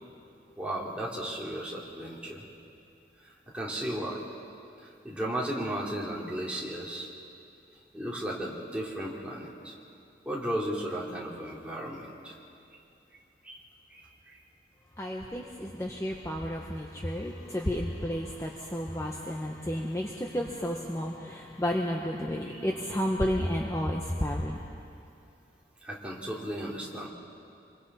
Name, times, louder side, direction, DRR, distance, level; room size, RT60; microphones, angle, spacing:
voice 1, 0.6-2.4 3.2-4.2 4.8-7.1 7.9-9.7 10.2-12.3 13.4-13.6 13.9-14.4 22.5-22.6 22.9-23.0 25.8-27.1, right 1 dB, 5° right, -4 dB, 2.7 m, -35 dB
voice 2, 15.0-24.6, equal, 15° left, 0 dB, 0.9 m, -32 dB
27.5 x 22.5 x 4.2 m, 2.6 s
head